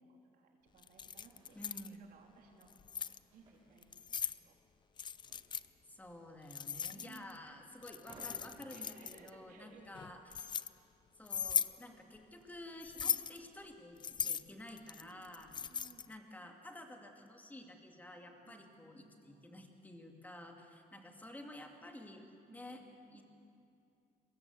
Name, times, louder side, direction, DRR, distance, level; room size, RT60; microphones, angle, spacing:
voice 1, 0.0-1.6 1.8-2.7 3.0-4.2 4.4-4.5 6.9-7.3 8.7-10.4 12.9-13.2 15.0-16.1 18.4-19.5 20.9-21.1 22.5-23.2, right 4 dB, 60° right, 1 dB, 3.5 m, -62 dB
sound 1, 0.6-11.0, right 2 dB, 30° right, 6.3 m, -65 dB
Keys jangling, 0.8-1.9 2.6-3.2 3.8-4.4 5.0-5.7 6.5-7.4 7.8-9.3 9.9-10.7 11.3-11.8 12.8-13.4 14.0-16.1, left 7 dB, 30° left, 0.5 m, -38 dB
voice 2, 1.6-2.1 5.9-10.6 11.2-15.5 16.1-22.2 22.5-22.8 23.1-23.2, left 1 dB, 10° left, 3 dB, 2.2 m, -51 dB
23.0 x 21.5 x 8.0 m, 2.5 s
cardioid pair, 160°, 16 cm